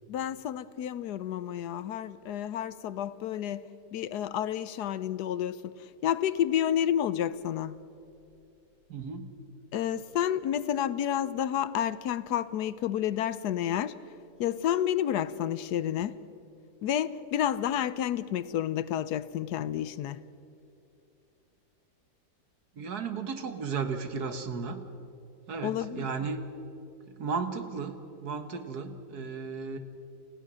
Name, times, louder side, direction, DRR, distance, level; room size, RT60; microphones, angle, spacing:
voice 1, 0.1-5.7 6.0-7.8 9.7-13.9 14.4-16.1 16.8-20.2 25.6-26.1, left 10 dB, 75° left, 1.2 m, -30 dB
voice 2, 8.9-9.3 22.8-24.8 25.5-26.4 27.1-29.8, right 5 dB, 70° right, 1.9 m, -34 dB
29.5 x 16.0 x 6.3 m
omnidirectional pair, 1.8 m